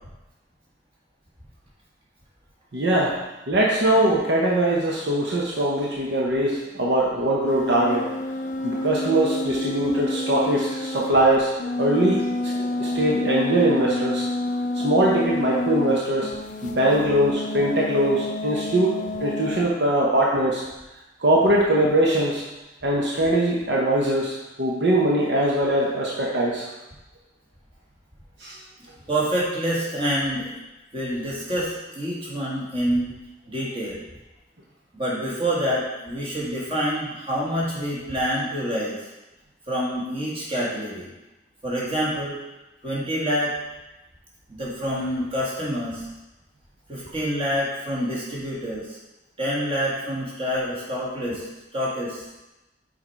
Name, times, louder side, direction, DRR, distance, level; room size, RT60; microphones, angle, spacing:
voice 1, 2.7-3.2 3.5-8.1 8.6-12.5 12.8-14.3 14.7-16.3 16.6-20.6 21.2-22.4 22.8-26.6 28.4-28.5, right 1 dB, 65° right, -4 dB, 0.9 m, -22 dB
sound 1, 7.5-16.0 16.2-19.6, left 2 dB, 40° left, 0.4 m, -28 dB
voice 2, 29.1-30.5 30.9-33.1 33.5-34.0 34.9-39.0 39.7-41.1 41.6-42.4 42.8-43.5 44.5-46.1 46.9-49.0 49.4-51.4 51.7-52.2, equal, 30° right, -6 dB, 1.8 m, -27 dB
6.4 x 4.4 x 4.5 m, 1.0 s
head